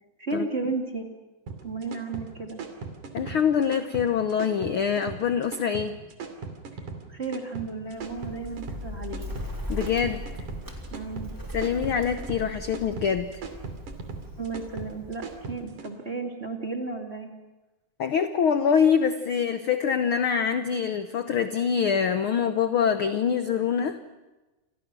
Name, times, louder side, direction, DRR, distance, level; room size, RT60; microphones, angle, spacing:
voice 1, 0.2-1.1 1.6-2.6 7.1-9.4 10.9-11.4 14.4-17.3, right 4 dB, 20° right, 2 dB, 2.4 m, -33 dB
sound 1, 1.5-15.9, right 4 dB, 80° right, 4.1 m, -39 dB
voice 2, 3.1-6.0 9.7-10.3 11.5-13.4 18.0-24.0, left 7 dB, 65° left, 9 dB, 1.4 m, -25 dB
Bird, 7.9-15.7, left 1 dB, 5° right, 3.4 m, -39 dB
30.0 x 26.5 x 6.2 m, 1.1 s
omnidirectional pair, 3.5 m